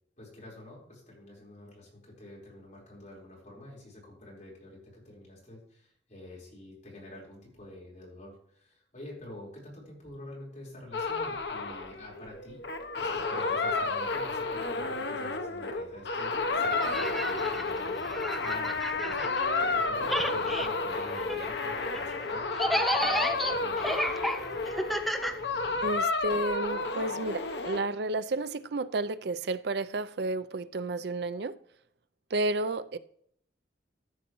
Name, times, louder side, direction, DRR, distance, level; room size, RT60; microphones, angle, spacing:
voice 1, 0.2-12.6 12.9-23.9, left 1 dB, 45° left, 4.4 m, -48 dB
sound 1, 10.9-27.8, left 3 dB, 75° left, 1.0 m, -31 dB
sound 2, 16.6-19.8 20.0-26.0, equal, ahead, 0.6 m, -33 dB
voice 2, 25.8-31.6 32.3-33.0, right 2 dB, 65° right, 0.5 m, -31 dB
14.0 x 7.2 x 3.1 m
head